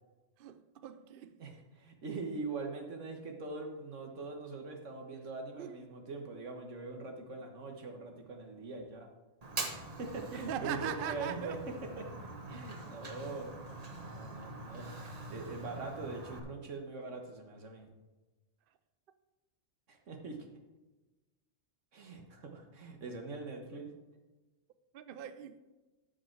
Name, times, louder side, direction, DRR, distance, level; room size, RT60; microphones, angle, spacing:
voice 1, 0.4-1.4 5.6-5.8 10.3-11.6 24.9-25.6, right 10 dB, 60° right, 0.7 m, -40 dB
voice 2, 1.4-9.1 9.7-11.6 12.0-12.1 12.5-13.5 13.9-14.9 15.3-17.9 19.9-20.5 21.9-23.9, right 3 dB, 85° right, 1.6 m, -42 dB
Fire, 9.4-16.4, right 2 dB, 35° right, 1.1 m, -44 dB
13.0 x 5.2 x 4.6 m
omnidirectional pair, 1.2 m